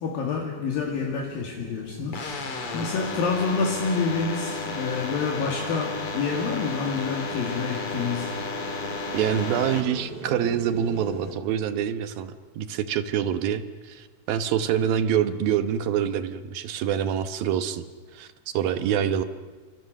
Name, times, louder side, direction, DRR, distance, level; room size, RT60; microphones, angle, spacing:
voice 1, 0.0-8.3, left 5 dB, 65° left, 0 dB, 3.8 m, -28 dB
sound 1, 0.7-11.3, right 2 dB, 30° right, 4.0 m, -42 dB
sound 2, 2.1-9.8, left 4 dB, 40° left, 2.8 m, -33 dB
voice 2, 9.1-17.8 18.1-18.3 18.5-19.2, right 9 dB, 70° right, 10 dB, 2.7 m, -26 dB
29.0 x 26.5 x 6.6 m, 1.4 s
omnidirectional pair, 4.5 m